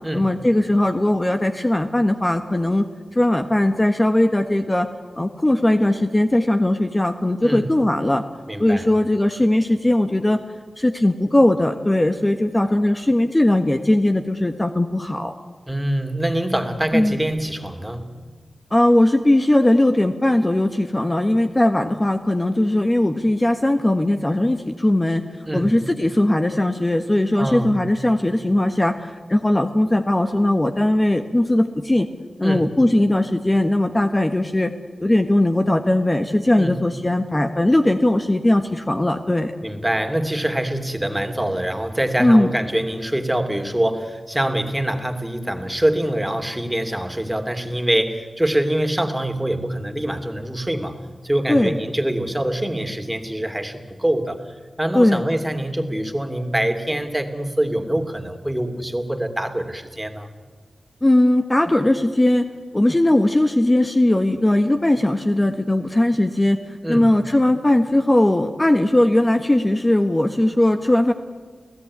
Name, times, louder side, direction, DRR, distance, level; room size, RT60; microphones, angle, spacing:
voice 1, 0.1-2.9 3.1-4.9 5.2-8.2 8.6-10.4 10.8-15.3 16.9-17.2 18.7-25.2 25.5-32.1 32.4-34.7 35.0-39.5 42.2-42.5 51.5-51.8 54.9-55.2 61.0-62.5 62.7-71.1, left 1 dB, 20° left, 6 dB, 1.4 m, -19 dB
voice 2, 8.5-8.9 15.7-18.1 25.4-25.7 27.4-27.7 32.4-32.7 36.6-36.8 39.6-51.0 51.2-54.4 54.8-60.3 66.8-67.1, right 1 dB, 10° right, 7 dB, 2.9 m, -24 dB
30.0 x 17.0 x 9.7 m, 1.5 s
cardioid pair, 60°, 0 cm